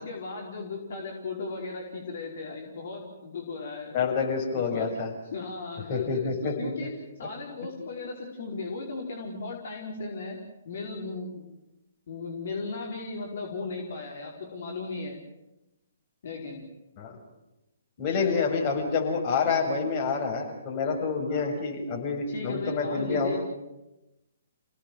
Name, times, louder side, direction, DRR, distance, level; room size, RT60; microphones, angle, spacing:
voice 1, 0.0-4.1 4.5-4.9 5.3-6.9 7.2-10.4 10.6-11.4 12.1-15.2 16.2-16.6 18.2-18.4 21.3-21.5 22.3-23.4, left 3 dB, 55° left, 0 dB, 4.8 m, -36 dB
voice 2, 3.9-5.1 5.9-6.5 6.8-6.9 17.0-17.2 18.0-23.4, left 5 dB, 30° left, 0 dB, 7.0 m, -27 dB
29.0 x 18.0 x 7.8 m, 0.95 s
figure-of-eight pair, 130°, 0 cm